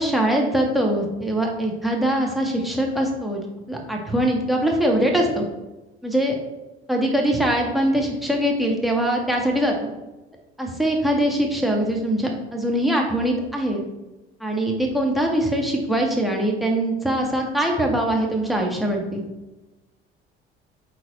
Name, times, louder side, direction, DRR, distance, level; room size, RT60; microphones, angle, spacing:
voice 1, 0.0-3.4 3.7-5.4 6.0-6.4 6.9-9.9 10.6-13.8 14.4-19.2, right 1 dB, ahead, 1 dB, 1.8 m, -22 dB
7.6 x 4.1 x 4.1 m, 1.1 s
figure-of-eight pair, 55°, 32 cm